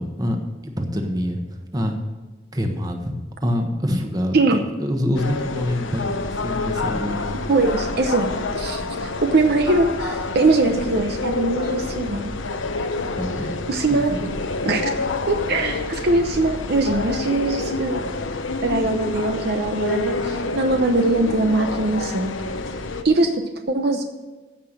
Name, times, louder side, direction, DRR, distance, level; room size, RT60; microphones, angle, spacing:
voice 1, 0.0-1.4 1.7-2.0 2.5-3.1 3.4-4.4 4.8-7.4 12.0-12.1 13.2-13.6 13.9-14.2, left 1 dB, 20° right, 4 dB, 1.3 m, -25 dB
sound 1, 5.1-23.0, left 3 dB, 85° left, 0.9 m, -28 dB
voice 2, 7.5-12.3 13.7-14.2 14.6-14.9 15.3-18.0 18.6-22.3 23.0-24.0, right 2 dB, 55° right, 5 dB, 0.8 m, -21 dB
15.0 x 5.7 x 6.6 m, 1.3 s
head